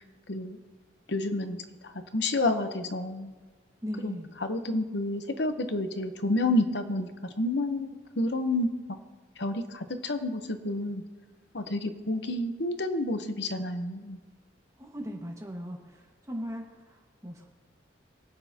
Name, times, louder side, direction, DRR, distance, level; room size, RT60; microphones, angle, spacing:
voice 1, 0.3-0.6 1.1-3.3 4.0-8.7 9.4-11.0 11.5-14.2, left 2 dB, 65° left, 7 dB, 0.9 m, -30 dB
voice 2, 3.8-4.3 14.8-17.5, equal, 15° right, 0 dB, 1.6 m, -38 dB
23.5 x 8.0 x 2.9 m, 1.4 s
head